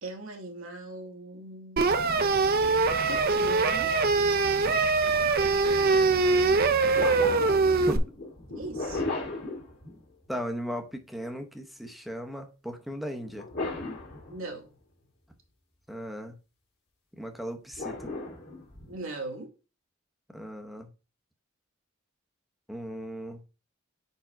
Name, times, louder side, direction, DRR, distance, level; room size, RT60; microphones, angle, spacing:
voice 1, 0.0-1.9 3.1-3.9 8.5-9.0 14.3-14.7 18.9-19.5, right 2 dB, 70° right, 1.2 m, -39 dB
sound 1, 1.8-8.0, right 4 dB, 45° right, 0.5 m, -23 dB
sound 2, 5.4-5.6 6.9-10.3 13.3-14.7 17.7-19.0, left 2 dB, 50° left, 1.9 m, -36 dB
voice 2, 10.3-13.5 15.9-16.4 17.2-18.1 20.3-20.9 22.7-23.4, equal, ahead, 0.7 m, -37 dB
4.9 x 4.6 x 4.4 m
head